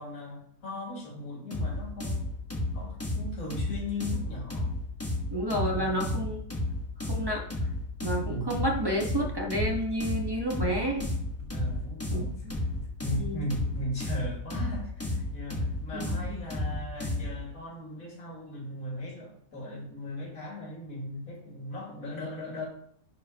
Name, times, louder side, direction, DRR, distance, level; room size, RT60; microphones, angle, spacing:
voice 1, 0.0-2.2 2.7-4.7 5.5-6.3 8.3-8.5 11.5-12.3 13.0-22.7, left 1 dB, 60° left, -4 dB, 2.6 m, -38 dB
sound 1, 1.5-17.4, left 2 dB, 10° left, 1.1 m, -32 dB
voice 2, 5.3-6.4 7.0-7.5 8.0-11.1 12.1-12.2 13.1-13.4 15.9-16.4, right 1 dB, 15° right, -1 dB, 1.0 m, -30 dB
sound 2, 8.5-9.0 9.3-10.1 10.3-11.1 11.4-13.9, right 2 dB, 70° right, 1.6 m, -44 dB
11.0 x 4.7 x 2.9 m, 0.66 s
omnidirectional pair, 1.7 m